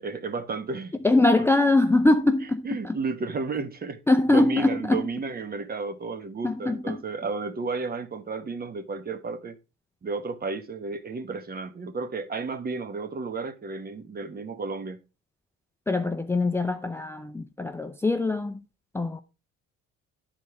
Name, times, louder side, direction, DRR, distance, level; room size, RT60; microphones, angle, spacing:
voice 1, 0.0-0.9 2.6-4.0 4.3-9.6 10.0-15.0, right 4 dB, 30° right, 1.1 m, -32 dB
voice 2, 1.0-3.0 4.1-5.1 6.4-7.0 15.9-18.6 18.9-19.2, left 2 dB, 10° left, 0.5 m, -23 dB
9.7 x 4.2 x 4.6 m
cardioid pair, 110°, 30 cm